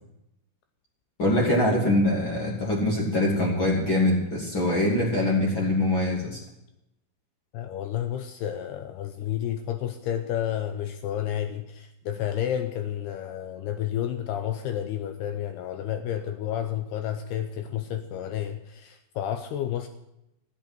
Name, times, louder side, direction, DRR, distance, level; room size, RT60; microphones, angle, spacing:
voice 1, 1.2-6.4, left 1 dB, 35° left, -2 dB, 2.4 m, -23 dB
voice 2, 7.5-19.9, left 10 dB, 80° left, 8 dB, 2.4 m, -31 dB
14.5 x 8.2 x 9.1 m, 0.85 s
omnidirectional pair, 5.4 m